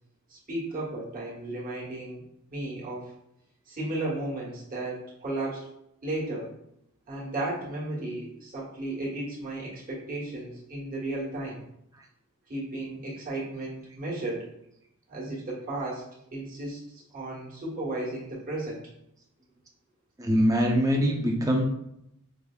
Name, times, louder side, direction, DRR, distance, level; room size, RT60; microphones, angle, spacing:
voice 1, 0.3-2.2 2.5-3.1 3.7-5.7 6.0-6.5 7.1-11.6 12.5-14.5 15.1-16.0 16.3-18.8, right 2 dB, 40° right, -6 dB, 1.3 m, -34 dB
voice 2, 20.2-21.7, equal, 15° right, -1 dB, 0.6 m, -23 dB
4.8 x 2.6 x 2.3 m, 0.78 s
head